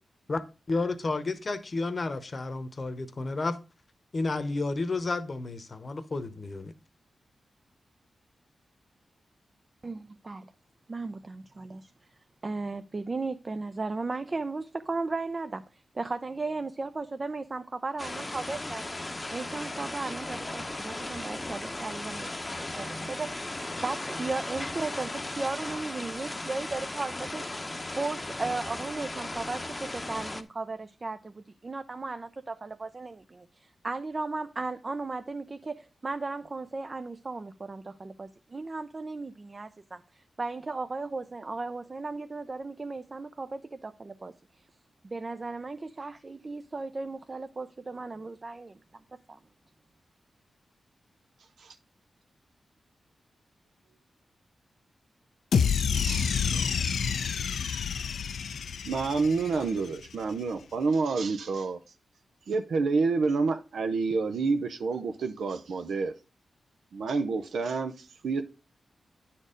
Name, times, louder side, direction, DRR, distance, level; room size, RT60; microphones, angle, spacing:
voice 1, 0.7-3.6 4.1-6.7, left 3 dB, 40° left, 0.9 m, -31 dB
voice 2, 9.8-10.5 10.9-11.9 12.4-18.8 19.3-23.5 23.8-27.5 28.0-44.7 45.0-49.0 49.3-49.4, right 3 dB, 35° right, 0.5 m, -36 dB
sound 1, 18.0-30.4, left 2 dB, 20° left, 0.8 m, -36 dB
sound 2, 55.5-59.9, left 6 dB, 85° left, 0.5 m, -28 dB
voice 3, 55.9-56.7 58.9-61.8 62.5-66.1 66.9-67.9 68.2-68.4, right 4 dB, 85° right, 0.7 m, -28 dB
9.9 x 4.3 x 5.1 m
wide cardioid pair, 90°, 0 cm